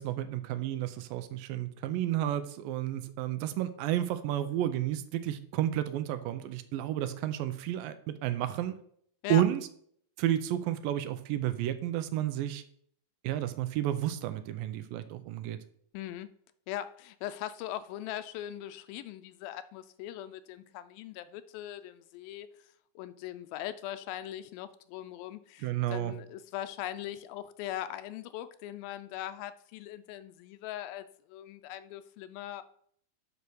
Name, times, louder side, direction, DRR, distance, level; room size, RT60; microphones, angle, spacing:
voice 1, 0.0-8.8 9.3-9.7 10.2-12.6 13.2-15.6 25.6-26.1, right 12 dB, 80° right, 11 dB, 2.2 m, -31 dB
voice 2, 15.9-16.3 16.7-22.5 23.0-32.6, left 12 dB, 85° left, 12 dB, 2.3 m, -40 dB
7.5 x 5.6 x 6.2 m, 0.64 s
omnidirectional pair, 4.2 m